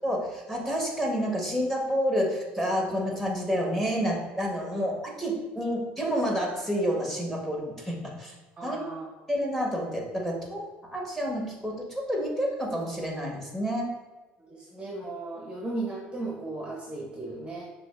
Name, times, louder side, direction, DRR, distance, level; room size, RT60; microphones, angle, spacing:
voice 1, 0.0-8.3 8.6-8.8 9.3-10.6 10.9-11.7 12.1-13.9, equal, 5° left, -1 dB, 1.2 m, -29 dB
voice 2, 8.6-9.1 14.5-17.7, right 2 dB, 20° right, -2 dB, 0.8 m, -36 dB
5.8 x 2.5 x 2.4 m, 1.2 s
supercardioid pair, 80°, 5 cm